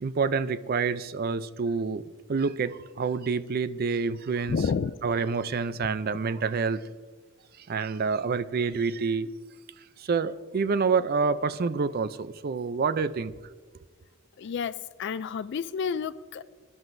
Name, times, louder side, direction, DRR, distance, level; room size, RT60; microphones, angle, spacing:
voice 1, 0.0-2.0 2.3-4.6 5.0-6.8 7.7-9.3 10.0-13.3, right 5 dB, 45° right, 0.4 m, -27 dB
voice 2, 4.5-5.0 14.4-16.4, left 6 dB, 55° left, 0.3 m, -30 dB
22.5 x 11.0 x 2.6 m
head